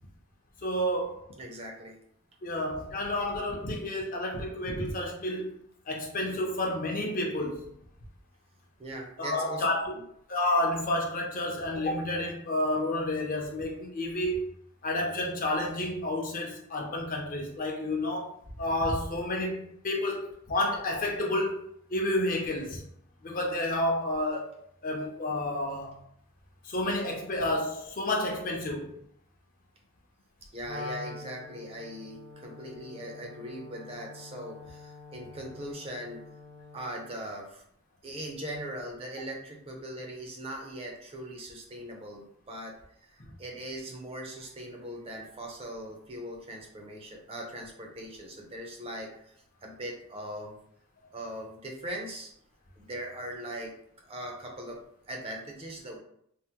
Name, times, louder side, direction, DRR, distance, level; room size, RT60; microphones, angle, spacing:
voice 1, 0.6-1.3 2.4-5.5 5.9-7.7 9.2-9.9 10.3-14.4 14.8-22.8 23.2-26.0 26.6-28.9, left 1 dB, 40° left, 0 dB, 0.6 m, -30 dB
voice 2, 1.4-2.0 8.8-9.6 9.9-10.0 30.5-36.2 36.7-37.6 38.0-49.3 49.6-50.5 51.1-52.3 52.8-53.7 54.0-56.0, right 1 dB, 25° right, 0 dB, 0.5 m, -40 dB
Wind instrument woodwind instrument, 30.6-37.0, left 3 dB, 65° right, 1.1 m, -45 dB
3.4 x 2.1 x 2.8 m, 0.69 s
head